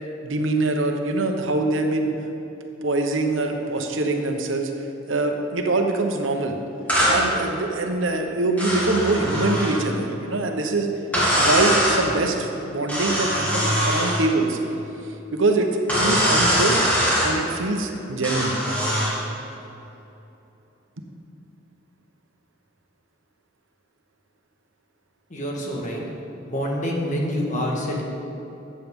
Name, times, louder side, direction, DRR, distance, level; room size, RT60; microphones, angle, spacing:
voice 1, 0.2-2.1 2.8-4.7 5.1-6.6 7.1-10.9 11.3-14.6 15.3-16.8 17.2-18.6, right 2 dB, 80° right, 4 dB, 1.0 m, -24 dB
sound 1, 6.9-7.2 8.6-9.8 11.1-12.0 12.9-14.2 15.9-17.3 18.2-19.2, equal, 10° left, 2.6 m, -22 dB
voice 2, 25.3-26.0 26.4-28.0, equal, 40° left, -1 dB, 1.6 m, -26 dB
14.0 x 8.6 x 3.7 m, 3.0 s
head